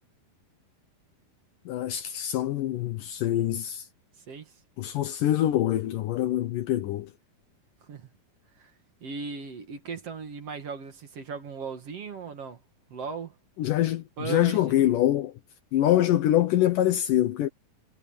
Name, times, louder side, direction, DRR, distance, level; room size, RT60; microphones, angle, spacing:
voice 1, 1.7-3.9 4.8-7.1 13.6-15.3 15.7-17.5, left 13 dB, 75° left, 2.5 m, -25 dB
voice 2, 4.2-4.5 7.9-8.1 8.6-8.7 9.0-12.6 12.9-13.4 14.2-14.8, right 5 dB, 50° right, 2.5 m, -37 dB
omnidirectional pair, 4.0 m